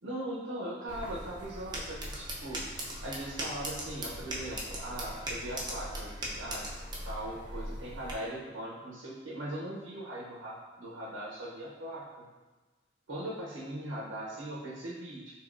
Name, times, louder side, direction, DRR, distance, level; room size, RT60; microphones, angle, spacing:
voice 1, 0.0-2.6 3.0-6.6 7.0-12.3 13.1-15.4, right 1 dB, 85° right, -5 dB, 0.9 m, -40 dB
sound 1, 0.9-8.1, right 1 dB, 20° right, 0.7 m, -39 dB
6.2 x 3.0 x 2.6 m, 1.3 s
head